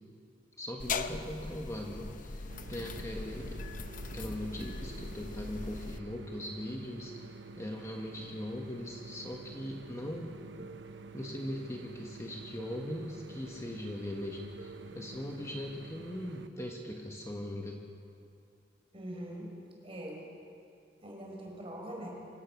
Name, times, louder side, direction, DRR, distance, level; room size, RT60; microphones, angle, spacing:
voice 1, 0.6-3.7 4.1-10.7 11.1-17.8, left 1 dB, 15° left, 0 dB, 1.4 m, -40 dB
sound 1, 0.8-6.0, left 4 dB, 45° left, 0.8 m, -40 dB
sound 2, 2.5-16.5, right 3 dB, 80° right, 0.9 m, -49 dB
sound 3, 10.6-11.8 12.6-13.8 14.6-15.7 16.6-17.8, right 5 dB, 55° right, 0.8 m, -54 dB
voice 2, 18.9-19.5 19.8-20.3 21.0-22.1, right 1 dB, 30° right, -1 dB, 4.8 m, -42 dB
26.0 x 16.5 x 6.0 m, 2.5 s
head